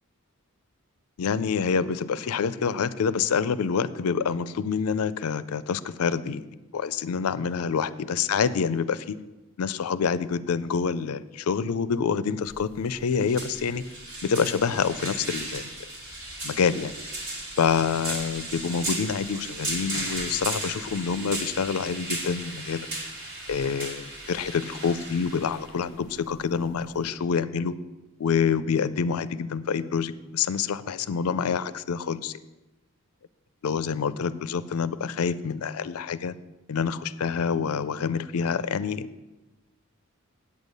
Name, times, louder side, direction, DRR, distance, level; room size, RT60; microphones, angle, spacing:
voice 1, 1.2-6.4 6.7-9.2 9.6-13.8 14.2-15.7 16.4-17.0 17.6-22.9 23.5-27.7 28.2-32.3 33.6-36.3 36.7-39.1, left 6 dB, 80° left, 15 dB, 0.4 m, -27 dB
sound 1, 12.4-27.1, right 1 dB, 65° right, 2.5 m, -36 dB
8.6 x 8.2 x 5.3 m, 1.1 s
head